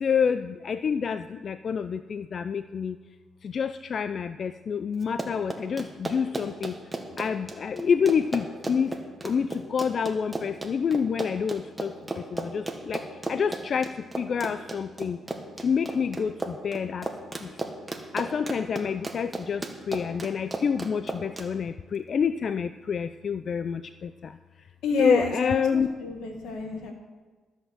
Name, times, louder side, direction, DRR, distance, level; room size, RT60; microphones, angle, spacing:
voice 1, 0.0-3.0 3.4-6.7 7.2-8.9 9.2-11.9 12.3-13.0 13.3-13.9 14.2-15.2 15.6-17.1 18.1-23.8 25.0-25.9, left 6 dB, 50° left, 11 dB, 0.3 m, -27 dB
Run, 5.0-21.5, right 2 dB, 15° right, 1.3 m, -35 dB
voice 2, 24.8-26.9, left 3 dB, 80° left, 4 dB, 1.7 m, -30 dB
13.0 x 6.3 x 6.7 m, 1.3 s
cardioid pair, 90°, 0 cm